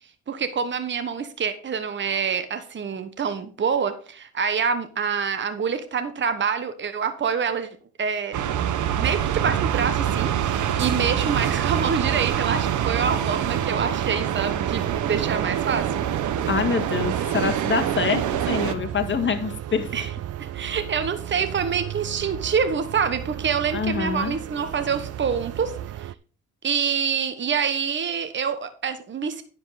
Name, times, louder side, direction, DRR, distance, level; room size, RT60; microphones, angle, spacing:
voice 1, 0.3-7.7 8.0-8.4 8.9-16.0 19.9-20.1 20.4-26.1 26.6-29.4, right 6 dB, 40° right, 10 dB, 1.2 m, -26 dB
sound 1, 8.3-18.7, right 10 dB, 75° right, 1.1 m, -25 dB
sound 2, 9.7-26.2, right 12 dB, 55° right, 0.5 m, -34 dB
voice 2, 16.5-19.9 23.7-24.3, left 6 dB, 40° left, 7 dB, 1.9 m, -25 dB
10.0 x 7.5 x 4.1 m, 0.40 s
cardioid pair, 90°, 30 cm